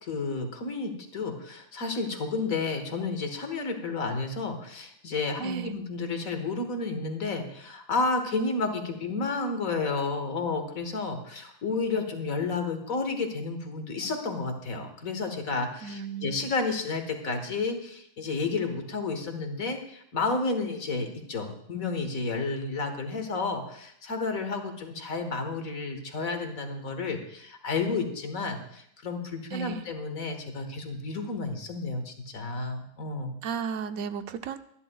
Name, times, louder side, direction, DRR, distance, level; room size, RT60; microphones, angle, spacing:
voice 1, 0.0-33.4, left 3 dB, 75° left, 6 dB, 1.9 m, -31 dB
voice 2, 5.4-5.8 15.8-16.4 29.5-29.9 33.4-34.6, right 7 dB, 85° right, 10 dB, 1.1 m, -34 dB
23.5 x 11.0 x 2.3 m, 0.70 s
omnidirectional pair, 1.5 m